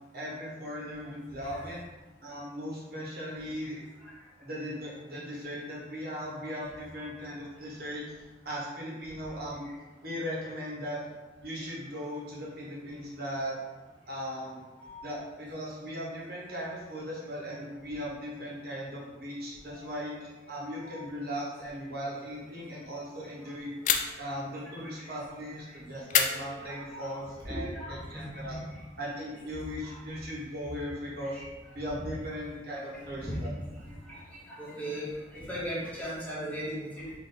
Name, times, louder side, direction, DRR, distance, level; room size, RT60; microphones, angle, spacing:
voice 1, 0.1-1.8 2.2-3.8 4.4-9.7 10.0-11.0 11.4-13.6 14.1-14.6 15.0-23.7 24.2-27.7 28.1-28.6 29.0-31.4 31.7-33.5, equal, 55° right, -5 dB, 1.2 m, -38 dB
sound 1, 23.9-24.4 26.1-27.1, left 7 dB, 40° left, 0.3 m, -29 dB
voice 2, 26.6-27.1 27.5-28.6 31.3-31.4 32.0-32.1 33.2-33.3 34.1-34.2 34.5-35.1 35.3-37.2, equal, 10° left, -7 dB, 0.9 m, -38 dB
3.9 x 3.2 x 3.8 m, 1.1 s
head